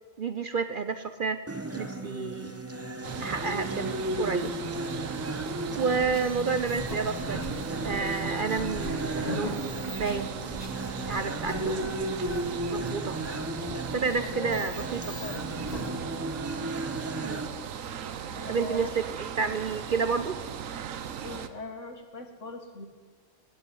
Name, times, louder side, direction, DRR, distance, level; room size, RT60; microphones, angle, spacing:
voice 1, 0.2-1.4 1.8-2.6 3.2-4.5 5.8-7.5 7.8-10.3 11.1-12.0 12.7-13.2 13.9-15.1 17.2-17.4 18.5-19.0 19.4-20.4, right 5 dB, 50° right, 10 dB, 0.7 m, -30 dB
sound 1, 1.5-17.5, right 1 dB, 10° right, 0.9 m, -35 dB
sound 2, 3.0-21.5, right 8 dB, 85° right, 1.2 m, -38 dB
sound 3, 5.9-15.9, left 2 dB, 30° left, 1.9 m, -41 dB
voice 2, 14.2-14.8 15.2-16.0 18.3-18.9 19.4-19.6 21.2-22.9, left 2 dB, 65° left, 6 dB, 2.1 m, -41 dB
18.0 x 8.0 x 9.9 m, 1.5 s
omnidirectional pair, 1.4 m